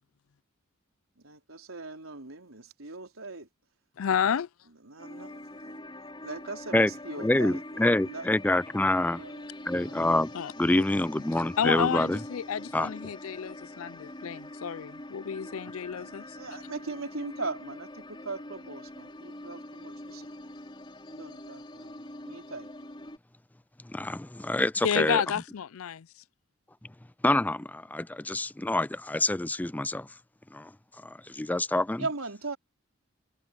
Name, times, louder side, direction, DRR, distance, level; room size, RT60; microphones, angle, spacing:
voice 1, 1.2-3.5 4.8-5.8 6.2-8.3 9.2-10.1 16.0-20.3 21.1-22.7 23.0-23.1 32.0-32.6, right 3 dB, 80° right, 4.0 m, -40 dB
voice 2, 4.0-4.5 10.3-10.5 11.6-16.2 24.8-26.1, left 8 dB, 80° left, 0.4 m, -30 dB
sound 1, 5.0-23.2, left 1 dB, 25° left, 4.9 m, -44 dB
voice 3, 7.2-9.2 9.7-10.3 10.6-12.2 12.7-12.9 23.8-25.2 27.2-30.1 30.5-32.1, left 1 dB, 10° left, 0.4 m, -27 dB
head